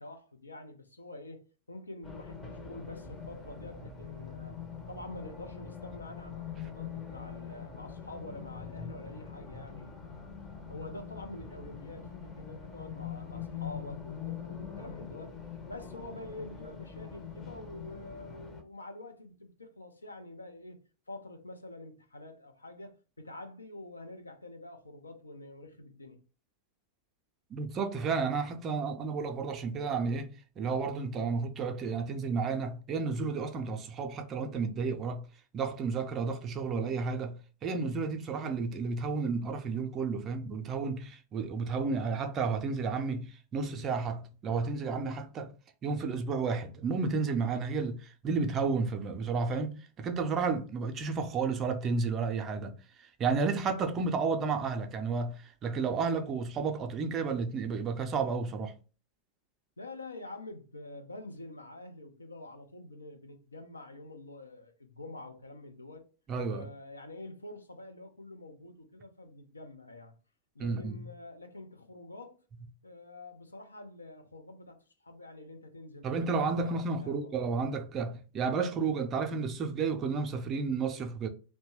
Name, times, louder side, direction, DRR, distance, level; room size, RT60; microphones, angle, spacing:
voice 1, 0.0-4.6 4.9-10.1 10.7-15.4 15.7-20.8 21.1-26.2 59.8-66.1 66.5-70.1 70.5-72.4 72.8-77.3, left 2 dB, 80° left, 0.5 m, -47 dB
Race car auto racing, 2.0-18.6, left 7 dB, 20° left, 0.6 m, -43 dB
voice 2, 27.5-35.2 35.5-45.5 45.8-58.7 66.3-66.7 70.6-71.0 76.0-81.3, right 4 dB, 30° right, 0.5 m, -32 dB
2.8 x 2.1 x 2.9 m
figure-of-eight pair, 90°, 0 cm